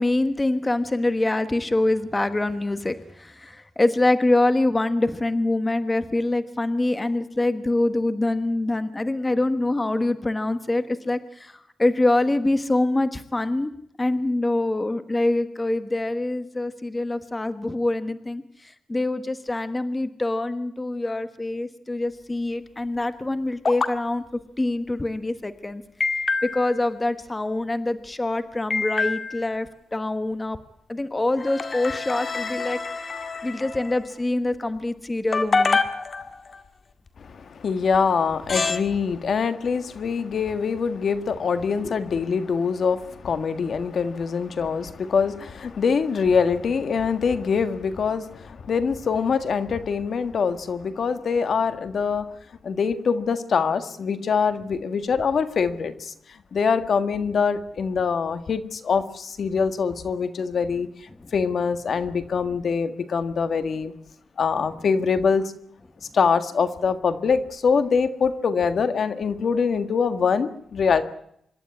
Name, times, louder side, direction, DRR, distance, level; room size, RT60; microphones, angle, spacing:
voice 1, 0.0-11.5 11.8-13.7 14.0-18.4 18.9-24.2 24.6-25.8 26.4-30.6 30.9-32.8 33.4-35.8, left 2 dB, 20° left, 11 dB, 1.2 m, -25 dB
sound 1, 23.6-23.9 26.0-26.8 28.7-29.5 31.4-34.0 35.3-36.6 37.9-38.0 38.5-38.8, left 4 dB, 40° left, 1.9 m, -26 dB
voice 2, 37.2-52.2 52.6-60.9 61.3-63.9 64.4-65.5 66.1-71.0, left 5 dB, 60° left, 10 dB, 1.7 m, -24 dB
26.0 x 12.5 x 9.8 m, 0.72 s
cardioid pair, 105°, 0 cm